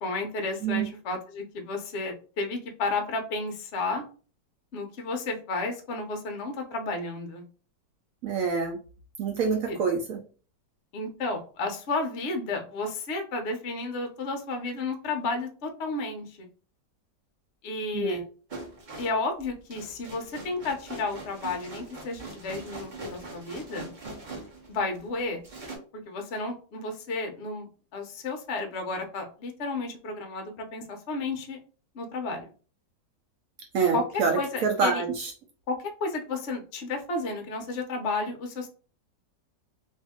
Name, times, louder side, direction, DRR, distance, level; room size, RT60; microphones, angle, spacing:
voice 1, 0.0-4.0 4.7-7.4 9.6-9.8 10.9-16.5 17.6-18.2 19.0-23.9 24.7-25.4 25.9-27.7 27.9-31.6 31.9-32.5 33.9-34.0 34.3-35.0 35.7-38.7, left 3 dB, 60° left, 4 dB, 0.7 m, -32 dB
voice 2, 8.2-8.8 9.2-10.2 17.9-18.2 33.7-35.3, right 5 dB, 70° right, 3 dB, 0.8 m, -26 dB
sound 1, 18.5-25.1 25.4-25.8, right 2 dB, 40° right, 0.7 m, -42 dB
2.7 x 2.7 x 3.5 m, 0.38 s
omnidirectional pair, 1.9 m